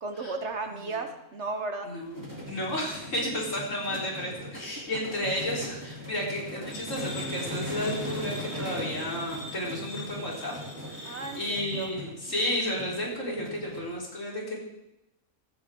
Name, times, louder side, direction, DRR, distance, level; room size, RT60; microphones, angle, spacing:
voice 1, 0.0-1.9 11.0-11.9, right 3 dB, 55° right, 6 dB, 1.4 m, -34 dB
voice 2, 1.8-10.5 11.0-14.6, left 1 dB, 65° left, -3 dB, 4.4 m, -32 dB
sound 1, 2.0-13.9, equal, 15° right, 3.6 m, -39 dB
sound 2, 6.7-11.9, equal, 80° left, 5.1 m, -43 dB
16.5 x 14.0 x 3.8 m, 0.86 s
omnidirectional pair, 1.5 m